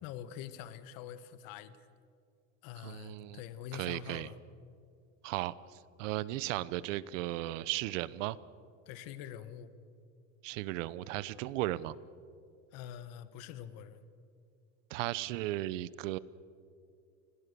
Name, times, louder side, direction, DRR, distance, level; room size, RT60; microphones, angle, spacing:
voice 1, 0.0-1.8 2.6-4.4 8.8-9.7 12.7-14.0, left 10 dB, 65° left, 12 dB, 1.6 m, -45 dB
voice 2, 2.8-3.4 3.7-4.3 5.2-8.4 10.4-11.9 14.9-16.2, right 16 dB, 90° right, 19 dB, 1.0 m, -36 dB
28.5 x 21.5 x 6.9 m, 2.4 s
supercardioid pair, 140°, 37 cm